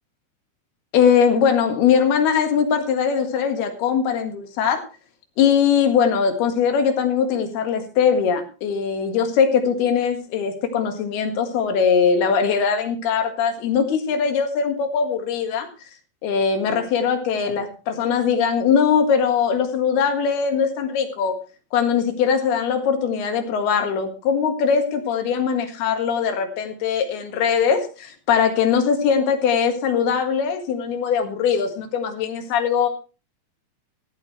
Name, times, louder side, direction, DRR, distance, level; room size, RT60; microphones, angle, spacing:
voice 1, 0.9-4.8 5.4-15.7 16.2-21.4 21.7-32.9, left 6 dB, 90° left, 6 dB, 3.7 m, -21 dB
16.0 x 12.5 x 3.2 m, 0.33 s
omnidirectional pair, 4.4 m